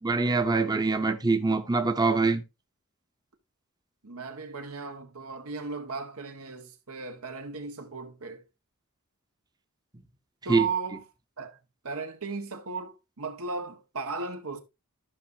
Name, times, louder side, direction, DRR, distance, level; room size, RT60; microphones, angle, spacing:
voice 1, 0.0-2.4 10.5-10.7, right 3 dB, 20° right, 0.8 m, -24 dB
voice 2, 4.0-8.4 10.4-11.0 11.4-11.6 11.8-14.6, right 4 dB, 80° right, 1.5 m, -36 dB
13.5 x 5.6 x 2.8 m
head